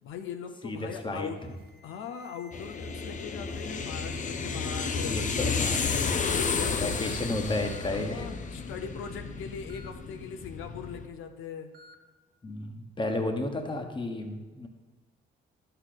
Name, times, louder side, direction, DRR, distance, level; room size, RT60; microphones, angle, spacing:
voice 1, 0.0-1.4 1.8-6.0 6.5-7.1 7.9-11.7, left 7 dB, 85° left, 7 dB, 0.6 m, -40 dB
voice 2, 0.6-1.3 5.0-6.0 6.7-8.3 12.4-14.7, left 2 dB, 25° left, 4 dB, 1.2 m, -32 dB
Alarm, 1.4-5.3 5.7-6.1 6.9-7.0 7.6-7.9 9.7-9.9 11.7-12.0, left 1 dB, 50° right, 1.6 m, -53 dB
sound 1, 2.5-11.1, left 5 dB, 40° left, 0.7 m, -32 dB
11.0 x 6.7 x 4.0 m, 1.2 s
cardioid pair, 90°, 20 cm